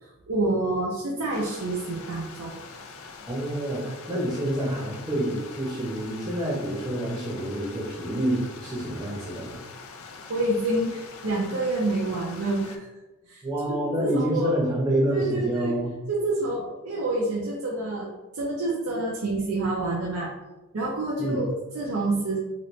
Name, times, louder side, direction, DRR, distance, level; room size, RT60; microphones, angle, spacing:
voice 1, 0.0-2.6 10.3-12.9 13.3-13.4 14.0-14.5 15.1-15.8 16.1-20.3 20.7-22.4, right 2 dB, 75° right, -3 dB, 0.5 m, -28 dB
Stream, 1.3-12.8, left 4 dB, 70° left, 0.4 m, -44 dB
voice 2, 3.3-9.6 13.4-15.9 21.2-21.4, right 1 dB, 15° right, -6 dB, 0.7 m, -27 dB
3.0 x 2.8 x 3.1 m, 1.1 s
head